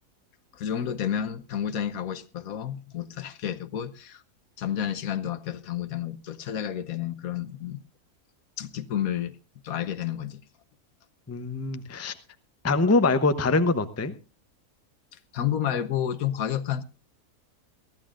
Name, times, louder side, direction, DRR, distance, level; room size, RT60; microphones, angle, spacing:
voice 1, 0.5-4.2 4.6-7.8 8.6-9.4 9.6-10.4 15.3-16.8, left 9 dB, 70° left, 1.3 m, -30 dB
voice 2, 11.3-12.1 12.6-14.1, left 3 dB, 15° left, 0.6 m, -23 dB
23.0 x 13.5 x 2.5 m
omnidirectional pair, 1.6 m